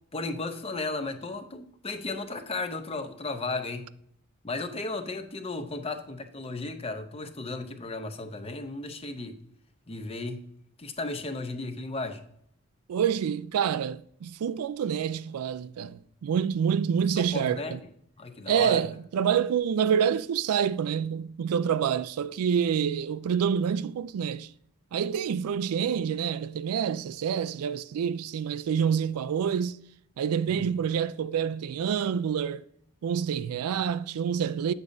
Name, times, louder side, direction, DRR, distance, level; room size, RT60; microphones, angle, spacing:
voice 1, 0.1-3.9 4.4-9.4 9.9-10.4 10.8-12.2 17.2-17.7 18.2-18.8 30.5-30.7, left 3 dB, 25° left, 0.6 m, -35 dB
voice 2, 12.9-17.8 18.5-24.5 24.9-29.8 30.2-32.7 33.0-34.7, right 7 dB, 90° right, 0.3 m, -27 dB
8.4 x 6.6 x 2.6 m
head